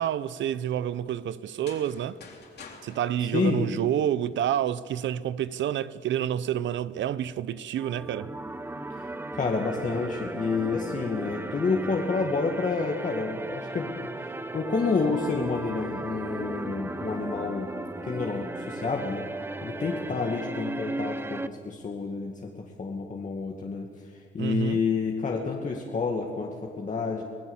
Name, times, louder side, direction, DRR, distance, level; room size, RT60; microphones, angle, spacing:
voice 1, 0.0-2.2 2.8-8.3 24.4-24.8, right 10 dB, 70° right, 0.7 m, -28 dB
sound 1, 1.5-4.4, left 5 dB, 55° left, 3.9 m, -49 dB
voice 2, 3.3-3.7 9.3-17.7 18.0-19.3 19.6-23.9 24.1-27.2, left 4 dB, 40° left, 2.1 m, -29 dB
sound 2, 7.8-21.5, right 2 dB, 10° right, 0.9 m, -36 dB
25.0 x 16.5 x 7.3 m
cardioid pair, 90°, 20 cm